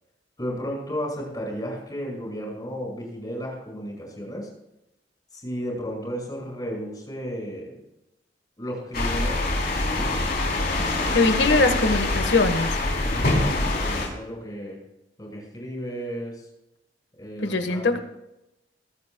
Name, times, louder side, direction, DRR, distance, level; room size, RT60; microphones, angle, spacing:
voice 1, 0.4-4.5 5.3-7.8 8.6-9.6 9.9-10.1 12.8-14.8 15.2-16.5 17.2-18.0, equal, 25° left, -1 dB, 5.7 m, -33 dB
sound 1, 8.9-14.1, left 2 dB, 60° left, 3.6 m, -24 dB
voice 2, 11.1-12.8 17.4-18.0, left 3 dB, 75° left, 8 dB, 1.5 m, -21 dB
21.0 x 15.0 x 2.3 m, 0.90 s
head